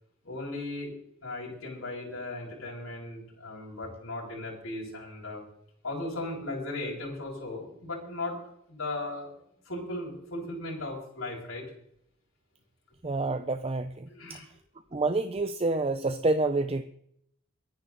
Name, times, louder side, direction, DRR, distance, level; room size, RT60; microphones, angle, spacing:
voice 1, 0.2-0.9 1.2-5.4 5.8-8.4 8.7-9.3 9.6-11.6 14.1-14.4, left 2 dB, 85° left, -4 dB, 6.7 m, -37 dB
voice 2, 13.0-14.4 14.9-16.8, right 2 dB, 30° right, 10 dB, 0.7 m, -28 dB
23.5 x 10.5 x 4.0 m, 0.69 s
head